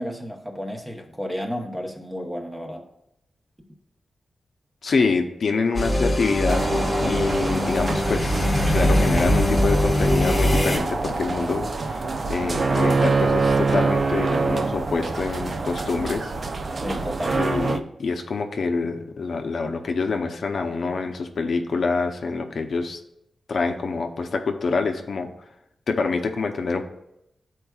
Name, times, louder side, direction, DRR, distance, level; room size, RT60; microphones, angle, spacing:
voice 1, 0.0-2.8 16.8-17.4, equal, 10° right, 2 dB, 0.9 m, -32 dB
voice 2, 4.8-6.7 7.0-12.0 12.3-16.3 17.4-23.0 23.5-25.3 25.9-26.8, left 4 dB, 60° left, 5 dB, 0.6 m, -26 dB
sound 1, 5.7-10.8, left 1 dB, 15° left, 1.1 m, -22 dB
sound 2, 6.5-17.8, right 3 dB, 40° right, 0.4 m, -25 dB
12.0 x 4.5 x 2.3 m, 0.81 s
wide cardioid pair, 165°, 0 cm